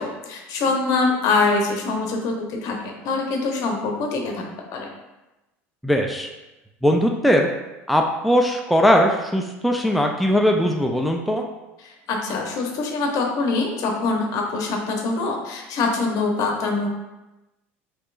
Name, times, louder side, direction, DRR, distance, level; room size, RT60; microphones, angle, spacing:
voice 1, 0.0-4.9 11.8-16.9, left 3 dB, 55° left, 1 dB, 0.8 m, -24 dB
voice 2, 5.8-6.3 6.8-7.5 7.9-11.5, equal, ahead, 1 dB, 0.4 m, -19 dB
4.4 x 2.9 x 2.5 m, 1.0 s
hypercardioid pair, 90°, 7 cm